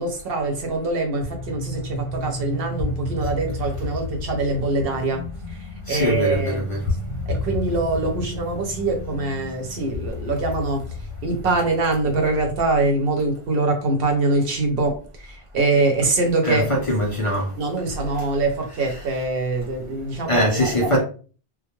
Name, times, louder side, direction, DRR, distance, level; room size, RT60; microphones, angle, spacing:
voice 1, 0.0-6.6 7.3-10.8 11.2-16.7 17.6-21.0, right 2 dB, 70° right, 0.9 m, -24 dB
sound 1, 1.2-12.5, left 2 dB, 70° left, 0.8 m, -32 dB
voice 2, 5.9-6.9 16.4-17.5 18.8-19.1 20.3-21.0, equal, 45° left, 0.5 m, -22 dB
2.2 x 2.1 x 2.9 m
omnidirectional pair, 1.0 m